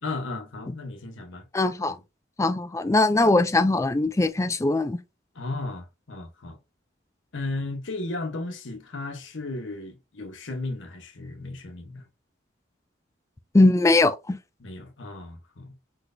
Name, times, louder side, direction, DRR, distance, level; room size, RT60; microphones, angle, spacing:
voice 1, 0.0-1.5 1.9-2.0 5.3-6.6 7.3-12.1 14.6-15.8, left 2 dB, 75° left, 1.0 m, -35 dB
voice 2, 1.5-2.0 2.4-5.0 13.5-14.4, left 2 dB, 15° left, 0.4 m, -21 dB
4.5 x 4.0 x 2.6 m
head